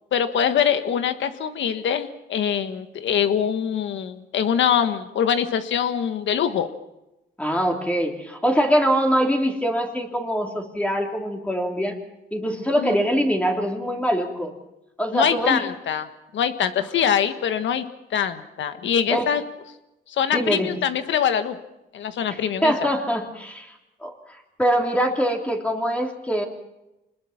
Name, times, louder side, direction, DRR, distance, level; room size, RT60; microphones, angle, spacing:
voice 1, 0.1-6.7 12.8-13.0 15.1-16.1 16.3-19.4 20.1-21.6 21.9-22.9, left 8 dB, 70° left, 9 dB, 1.6 m, -23 dB
voice 2, 7.4-12.0 12.3-14.5 15.0-15.6 19.1-19.2 20.3-20.7 22.3-23.7 24.0-24.1 24.6-26.5, equal, 5° left, 2 dB, 3.2 m, -23 dB
25.5 x 20.5 x 5.9 m, 0.95 s
cardioid pair, 90°, 20 cm